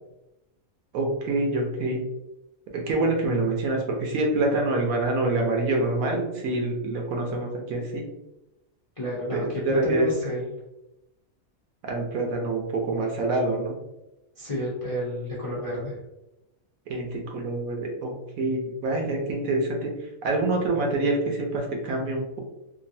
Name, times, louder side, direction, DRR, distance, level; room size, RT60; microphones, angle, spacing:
voice 1, 0.9-2.0 2.7-8.0 9.3-10.1 11.8-13.8 16.9-19.9 20.2-22.4, right 2 dB, 80° right, 1 dB, 1.2 m, -26 dB
voice 2, 9.0-10.5 14.4-16.0, equal, 45° left, -7 dB, 0.4 m, -31 dB
3.0 x 2.5 x 2.6 m, 0.91 s
omnidirectional pair, 1.5 m